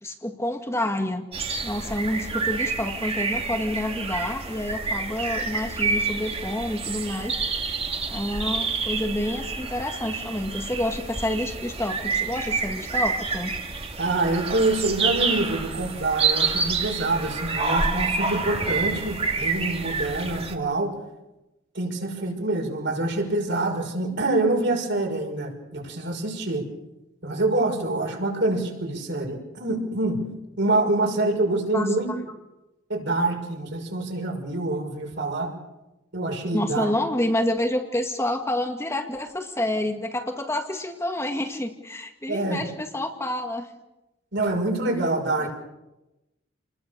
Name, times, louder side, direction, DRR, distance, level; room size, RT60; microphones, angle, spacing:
voice 1, 0.0-1.3 1.6-7.3 8.1-13.5 31.7-31.9 36.5-43.7 45.4-45.5, left 1 dB, 15° left, 3 dB, 2.0 m, -28 dB
sound 1, 1.3-20.5, right 4 dB, 30° right, 2.3 m, -28 dB
voice 2, 14.0-20.9 21.7-26.6 27.2-30.2 30.6-32.1 32.9-35.5 36.1-36.9 42.3-42.6 44.3-45.5, right 2 dB, 60° right, 2 dB, 6.2 m, -26 dB
29.5 x 21.0 x 6.8 m, 0.98 s
head